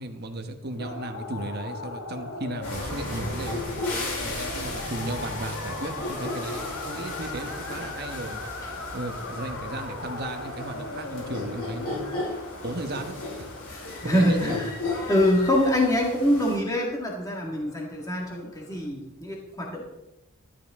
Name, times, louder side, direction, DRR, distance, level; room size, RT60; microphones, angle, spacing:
voice 1, 0.0-3.6 4.2-8.4 8.9-12.1 12.6-13.2 14.0-14.6, right 2 dB, 45° right, 6 dB, 1.1 m, -35 dB
sound 1, 0.8-18.9, left 3 dB, 65° left, 1.2 m, -40 dB
sound 2, 2.6-16.6, left 2 dB, 90° left, 4.4 m, -35 dB
voice 2, 13.7-14.8 15.1-19.8, equal, 15° left, -1 dB, 1.7 m, -25 dB
12.5 x 11.0 x 3.6 m, 0.95 s
head